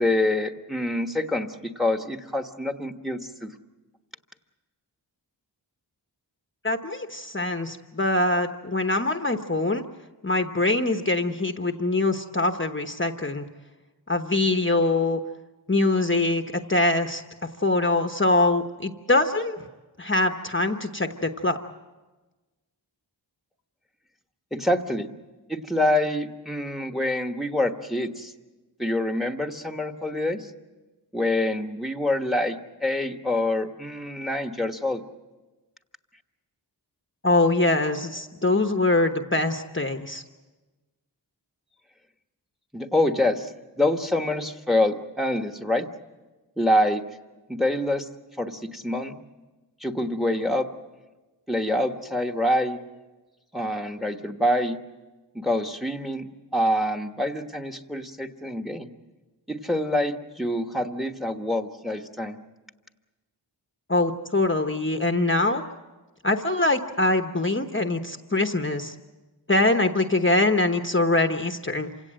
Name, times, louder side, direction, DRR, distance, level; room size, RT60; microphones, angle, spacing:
voice 1, 0.0-3.5 24.5-25.1 25.5-28.3 28.8-30.5 31.1-35.0 42.7-43.5 43.8-45.9 46.6-47.0 47.5-48.1 48.4-49.2 49.8-50.7 51.5-52.8 53.5-54.8 55.3-58.9 59.5-62.4, left 1 dB, ahead, 6 dB, 1.3 m, -26 dB
voice 2, 6.6-9.8 10.2-13.4 14.1-15.2 15.7-17.2 17.6-19.7 20.0-21.6 37.2-40.2 63.9-65.6 66.2-68.9 69.5-71.9, left 2 dB, 25° left, 6 dB, 1.0 m, -23 dB
27.5 x 17.0 x 7.7 m, 1.2 s
wide cardioid pair, 60°, 43 cm